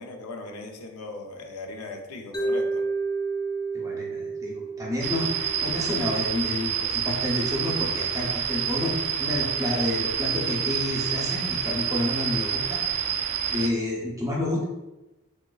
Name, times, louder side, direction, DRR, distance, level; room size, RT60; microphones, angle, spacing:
voice 1, 0.0-2.8, left 2 dB, 80° left, 4 dB, 0.6 m, -38 dB
Mallet percussion, 2.3-6.4, right 3 dB, 20° left, 0.3 m, -31 dB
voice 2, 3.7-14.6, left 1 dB, 15° right, -3 dB, 0.7 m, -30 dB
sound 1, 5.0-13.7, right 8 dB, 80° right, 0.4 m, -28 dB
3.5 x 3.1 x 2.3 m, 1.0 s
head